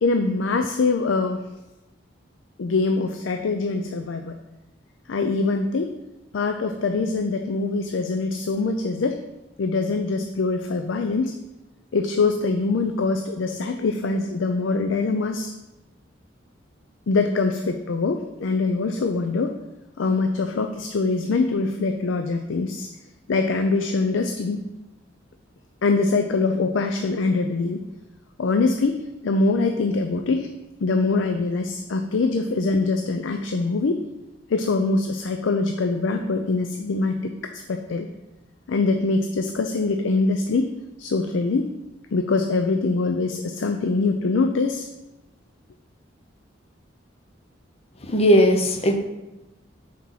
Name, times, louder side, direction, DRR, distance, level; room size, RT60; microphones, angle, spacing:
voice 1, 0.0-1.5 2.6-4.4 5.1-5.9 6.3-9.2 9.6-11.3 11.9-15.5 17.1-19.6 20.0-22.9 23.3-24.6 25.8-27.8 28.4-30.5 30.8-34.0 34.5-38.1 38.7-40.7 41.0-41.7 42.1-44.9, left 3 dB, 85° left, 6 dB, 0.5 m, -23 dB
voice 2, 48.0-48.9, equal, 35° left, 5 dB, 0.8 m, -17 dB
5.9 x 4.5 x 5.7 m, 1.0 s
head